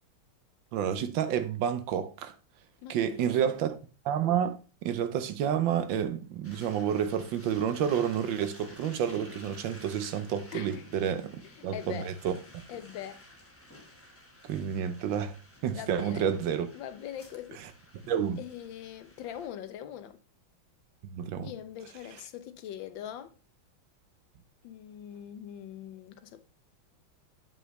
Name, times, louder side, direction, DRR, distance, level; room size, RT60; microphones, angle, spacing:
voice 1, 0.7-2.3 2.9-3.8 4.0-11.3 11.6-12.3 14.4-15.4 15.6-16.7 18.1-18.4 21.1-21.5, right 8 dB, 75° right, 1.4 m, -29 dB
voice 2, 2.8-3.5 10.5-10.8 11.6-12.1 12.7-13.2 15.7-16.3 16.7-17.6 18.4-20.2 21.4-23.3 24.6-26.4, left 10 dB, 75° left, 1.3 m, -42 dB
sound 1, 6.4-19.5, left 1 dB, 10° left, 0.8 m, -53 dB
7.4 x 5.5 x 3.1 m
omnidirectional pair, 2.2 m